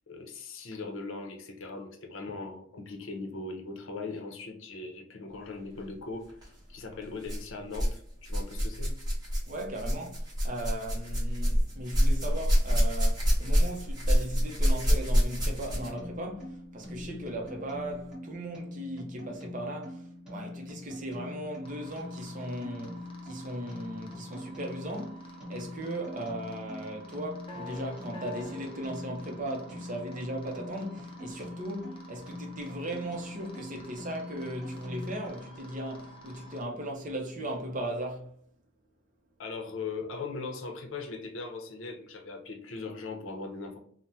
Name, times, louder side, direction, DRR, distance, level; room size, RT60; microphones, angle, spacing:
voice 1, 0.1-9.0 17.0-17.2 39.4-43.8, left 3 dB, 70° left, 0.6 m, -39 dB
sound 1, 6.3-6.5 7.2-8.0 8.2-16.0 17.0-17.1 17.9-18.0, equal, 20° right, 0.9 m, -27 dB
voice 2, 9.5-38.3, right 1 dB, 40° right, 0.6 m, -37 dB
sound 2, 15.7-35.3, left 1 dB, 5° right, 1.2 m, -43 dB
sound 3, 21.6-36.6, equal, 25° left, 0.5 m, -50 dB
3.3 x 2.1 x 2.7 m
head